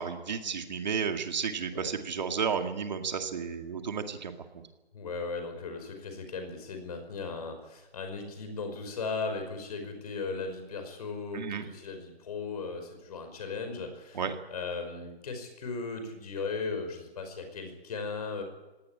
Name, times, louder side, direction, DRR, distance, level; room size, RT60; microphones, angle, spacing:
voice 1, 0.0-4.3 11.3-11.7 14.1-14.3, right 6 dB, 45° right, 6 dB, 2.2 m, -32 dB
voice 2, 4.9-14.2 14.5-18.4, left 4 dB, 40° left, 6 dB, 5.4 m, -37 dB
19.5 x 17.5 x 10.0 m, 1.1 s
hypercardioid pair, 160°, 32 cm